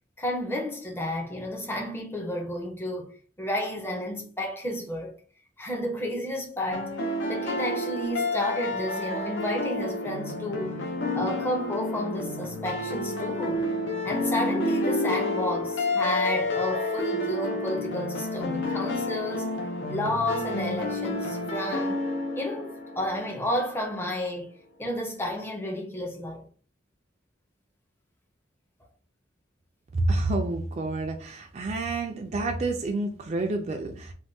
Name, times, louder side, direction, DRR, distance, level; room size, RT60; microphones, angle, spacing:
voice 1, 0.2-5.1 5.6-7.0 7.3-10.8 11.2-13.7 14.0-19.5 19.9-22.0 22.3-24.5 24.8-26.4, left 1 dB, 10° left, 0.6 m, -31 dB
sound 1, 6.7-23.6, left 2 dB, 80° left, 0.6 m, -30 dB
voice 2, 29.9-34.1, right 2 dB, 35° right, 0.3 m, -28 dB
3.4 x 2.2 x 2.6 m
head